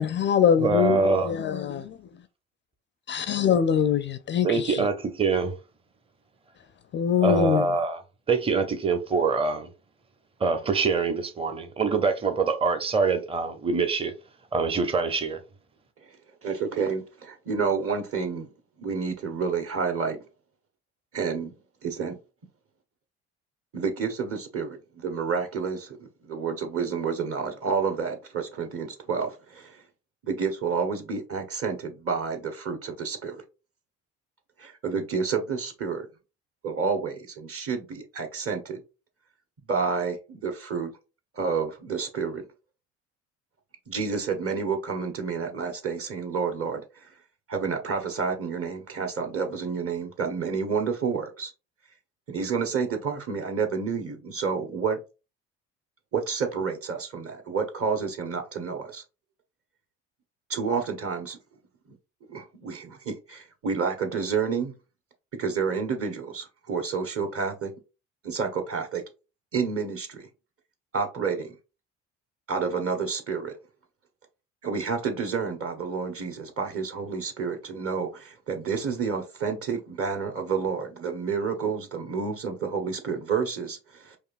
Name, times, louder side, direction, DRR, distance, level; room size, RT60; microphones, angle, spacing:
voice 1, 0.0-1.8 3.1-4.9 6.9-7.7, left 8 dB, 35° left, 0.4 m, -23 dB
voice 2, 0.5-1.3 4.4-5.5 7.2-8.0 8.3-9.7 10.4-14.1 14.5-15.4, right 4 dB, 15° right, 0.7 m, -24 dB
voice 3, 16.4-18.5 18.8-20.2 21.1-21.5 21.8-22.2 23.7-29.8 30.2-33.4 34.6-36.1 36.6-38.8 39.7-40.9 41.3-42.4 43.9-47.1 47.5-51.5 52.3-55.0 56.1-59.0 60.5-61.4 62.3-64.7 65.4-67.7 68.2-69.0 69.5-70.3 70.9-71.6 72.5-73.5 74.6-84.2, right 5 dB, 40° right, 1.2 m, -29 dB
4.8 x 2.6 x 2.5 m
hypercardioid pair, 60°, 35 cm